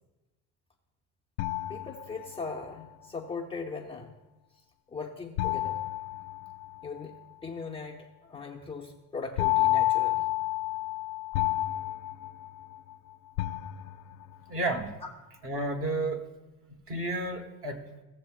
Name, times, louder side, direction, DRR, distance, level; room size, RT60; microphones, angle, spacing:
sound 1, 1.4-2.6 5.4-7.0 9.4-13.0 13.4-14.3, left 16 dB, 90° left, 0.5 m, -30 dB
voice 1, 1.7-4.2 4.9-5.8 6.8-10.3, left 4 dB, 15° left, -2 dB, 0.8 m, -39 dB
voice 2, 14.5-14.9 15.4-16.3 16.9-17.8, right 2 dB, 35° right, 4 dB, 1.5 m, -31 dB
16.5 x 7.1 x 2.5 m, 1.1 s
supercardioid pair, 115°, 41 cm